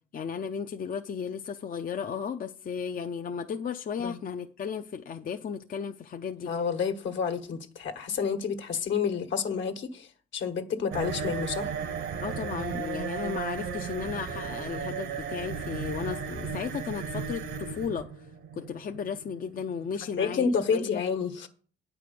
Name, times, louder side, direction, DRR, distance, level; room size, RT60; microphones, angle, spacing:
voice 1, 0.1-6.5 12.2-18.1 18.5-21.0, left 6 dB, 45° left, 0.6 m, -35 dB
voice 2, 6.4-10.1 10.3-11.7 20.2-21.5, left 6 dB, 70° left, 1.4 m, -29 dB
sound 1, 10.9-20.5, right 6 dB, 70° right, 1.2 m, -35 dB
9.3 x 4.9 x 6.9 m
cardioid pair, 90°, 20 cm